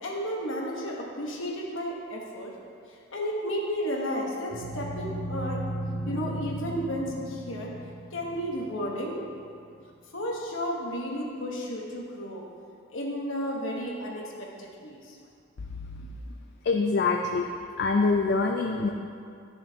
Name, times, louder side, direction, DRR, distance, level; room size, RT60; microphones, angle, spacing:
voice 1, 0.0-2.6 3.1-5.7 6.1-7.7 8.1-9.2 10.1-12.5 12.9-15.2, equal, 70° left, -1 dB, 1.1 m, -33 dB
sound 1, 4.5-9.6, right 1 dB, 55° right, 1.6 m, -36 dB
voice 2, 16.6-17.5 17.8-18.9, left 4 dB, 50° left, 2 dB, 0.4 m, -24 dB
11.0 x 7.0 x 2.8 m, 2.4 s
head